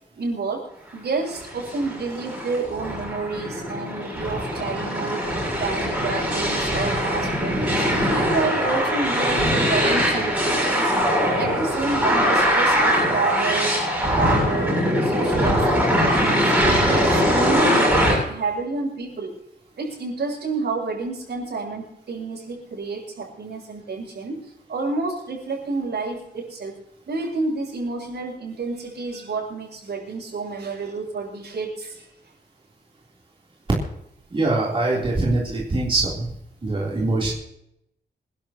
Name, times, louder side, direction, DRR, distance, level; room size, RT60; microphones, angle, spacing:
voice 1, 0.1-0.7 0.9-5.2 5.6-7.9 8.1-10.9 11.3-19.4 19.8-24.4 24.7-32.1, right 3 dB, 70° right, -2 dB, 7.5 m, -29 dB
sound 1, 1.3-18.1, equal, 5° right, 7.3 m, -22 dB
voice 2, 34.3-36.3 36.6-37.3, right 2 dB, 30° right, -4 dB, 3.6 m, -23 dB
27.5 x 12.0 x 3.0 m, 0.78 s
wide cardioid pair, 180°, 18 cm